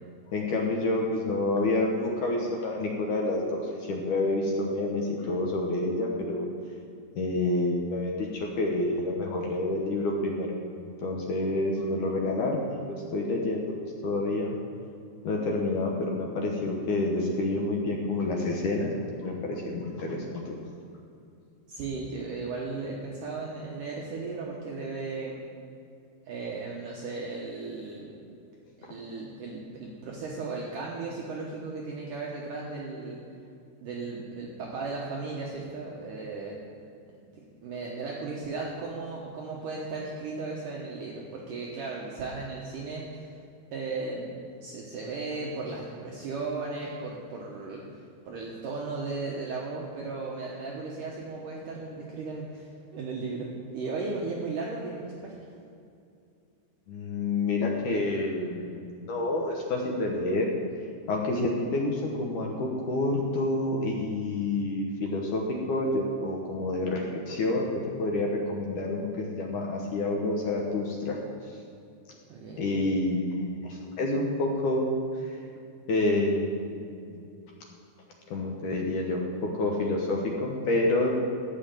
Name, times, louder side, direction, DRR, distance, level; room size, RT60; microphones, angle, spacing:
voice 1, 0.3-6.5 7.2-10.5 10.8-14.6 15.2-20.5 28.8-28.9 56.9-60.5 61.1-65.4 65.7-71.2 71.5-71.6 72.6-75.0 75.3-75.4 75.9-77.3 77.7-77.8 78.3-81.2, left 2 dB, 65° left, 0 dB, 2.1 m, -28 dB
voice 2, 21.7-25.4 26.3-28.2 28.9-33.2 33.8-36.6 37.2-43.3 43.7-44.3 44.6-47.8 48.3-55.4 72.3-72.7, right 3 dB, 65° right, -3 dB, 2.2 m, -36 dB
14.5 x 5.6 x 9.0 m, 2.5 s
omnidirectional pair, 4.8 m